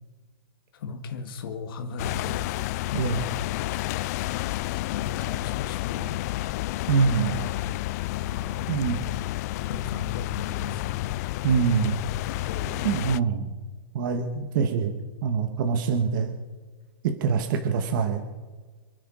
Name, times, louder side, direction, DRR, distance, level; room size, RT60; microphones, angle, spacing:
voice 1, 0.8-2.4 2.9-3.1 4.7-6.7 8.2-8.8 9.5-11.1 12.2-13.0, left 5 dB, 60° left, 5 dB, 2.3 m, -37 dB
sound 1, 2.0-13.2, left 18 dB, 40° left, 0.4 m, -30 dB
voice 2, 2.9-3.2 6.9-7.4 8.7-9.0 11.4-12.0 12.8-13.5 13.9-15.0 15.2-16.3 17.0-18.2, right 6 dB, 55° right, 5 dB, 1.9 m, -24 dB
28.0 x 10.0 x 4.3 m, 1.4 s
hypercardioid pair, 145°, 13 cm